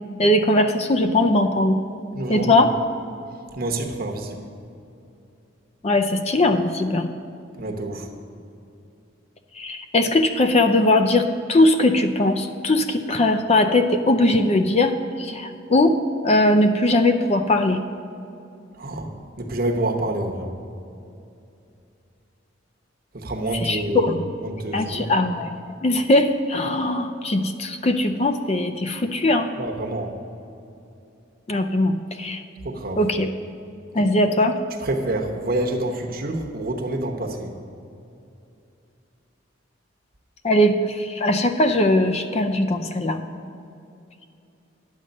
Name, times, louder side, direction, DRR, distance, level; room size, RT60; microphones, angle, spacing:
voice 1, 0.2-1.8 2.3-2.7 5.8-7.1 9.5-17.8 23.5-24.2 24.7-29.5 31.5-32.4 33.0-33.3 33.9-34.6 40.4-43.3, left 1 dB, 35° left, 7 dB, 0.5 m, -20 dB
voice 2, 2.1-2.6 3.5-4.4 7.6-8.1 18.8-19.1 19.4-20.5 23.1-24.1 24.4-25.1 29.6-30.1 32.6-33.0 34.8-37.5, right 1 dB, 50° right, 3 dB, 1.0 m, -27 dB
10.5 x 7.7 x 5.2 m, 2.7 s
head